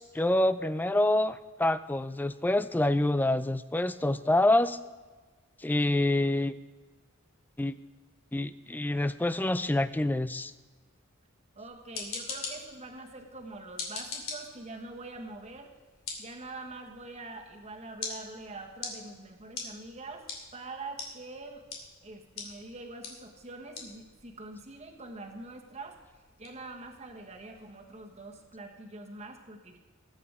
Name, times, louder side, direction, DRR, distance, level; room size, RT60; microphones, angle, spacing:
voice 1, 0.0-4.8 5.6-6.5 7.6-7.7 8.3-10.5, left 1 dB, 10° left, 14 dB, 0.3 m, -27 dB
voice 2, 11.5-15.7 16.2-20.3 20.5-21.6 22.0-26.0 26.4-29.8, right 2 dB, 30° right, 2 dB, 1.5 m, -44 dB
sound 1, 11.7-28.5, left 4 dB, 85° left, 2.7 m, -45 dB
20.0 x 8.9 x 3.6 m, 1.4 s
head